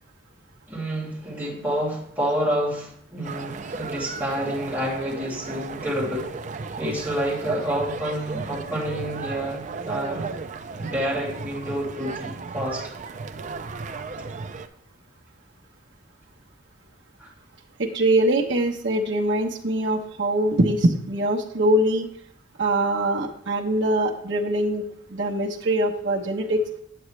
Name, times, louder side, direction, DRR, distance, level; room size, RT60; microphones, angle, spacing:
voice 1, 0.7-6.4 6.8-10.4 10.8-12.9 17.2-17.3, equal, 10° right, -7 dB, 2.7 m, -28 dB
sound 1, 3.2-14.7, right 4 dB, 40° right, 0.4 m, -35 dB
voice 2, 17.8-22.1 22.6-24.8 25.1-26.6, right 1 dB, 65° right, -2 dB, 1.0 m, -23 dB
8.6 x 7.8 x 3.2 m, 0.66 s
head